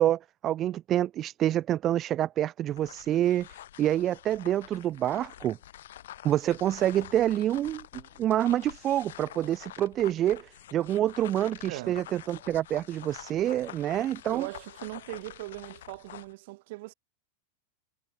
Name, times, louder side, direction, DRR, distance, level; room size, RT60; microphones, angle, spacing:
voice 1, 0.0-3.5 3.8-5.6 6.2-7.8 8.2-14.5, right 12 dB, 30° right, 0.8 m, -27 dB
sound 1, 2.7-16.3, left 12 dB, 60° left, 1.6 m, -47 dB
voice 2, 11.6-12.1 14.3-16.9, right 22 dB, 50° right, 7.7 m, -40 dB
figure-of-eight pair, 90°, 0 cm